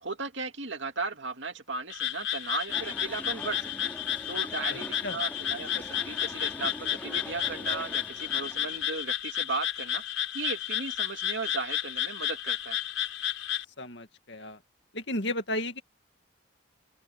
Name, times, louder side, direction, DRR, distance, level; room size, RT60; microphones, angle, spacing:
voice 1, 0.0-3.9 4.3-12.8, right 4 dB, 60° right, 2.5 m, -36 dB
Frog, 1.9-13.6, left 11 dB, 75° left, 5.6 m, -32 dB
sound 1, 2.7-8.9, left 1 dB, 10° left, 4.3 m, -44 dB
voice 2, 13.8-14.6 14.9-15.8, left 1 dB, 60° left, 2.3 m, -33 dB
open air
head